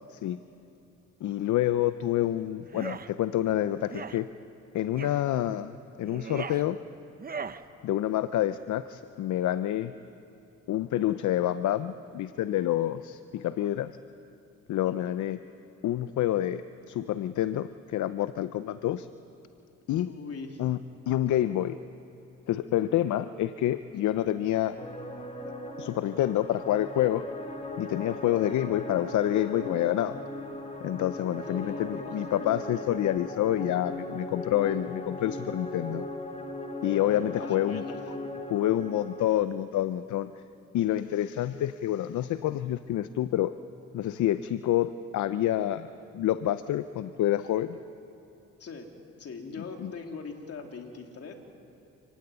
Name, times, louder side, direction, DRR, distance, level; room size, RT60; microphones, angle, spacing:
voice 1, 1.2-4.3 4.7-6.8 7.8-9.9 10.7-13.9 14.7-15.4 15.8-19.1 19.9-20.1 20.6-20.8 21.1-21.8 22.5-24.8 25.8-27.2 27.8-30.2 30.8-36.1 36.8-37.8 38.5-40.3 40.7-43.5 43.9-45.9 46.1-47.8 49.8-49.9, left 12 dB, 75° left, 12 dB, 0.7 m, -28 dB
sound 1, 2.7-3.1 3.9-4.2 5.0-5.2 6.0-6.6 7.2-7.6, right 6 dB, 30° right, 0.9 m, -38 dB
voice 2, 20.0-20.6 31.4-32.1 37.1-38.2 48.6-51.3, left 4 dB, 50° left, 3 dB, 3.1 m, -41 dB
sound 2, 24.8-39.3, left 1 dB, 20° left, 2.9 m, -38 dB
28.0 x 16.0 x 9.7 m, 2.7 s
cardioid pair, 90°, 30 cm